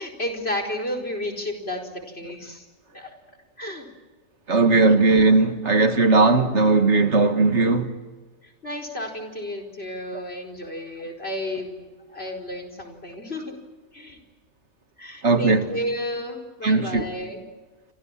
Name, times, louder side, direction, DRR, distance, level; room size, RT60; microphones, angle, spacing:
voice 1, 0.0-2.7 2.9-3.1 3.6-3.9 8.4-13.5 13.9-14.2 15.0-17.5, left 1 dB, 50° left, 4.9 m, -32 dB
voice 2, 4.5-7.9 15.2-15.7 16.6-17.0, right 3 dB, 60° right, 2.1 m, -18 dB
29.0 x 25.5 x 7.5 m
omnidirectional pair, 1.3 m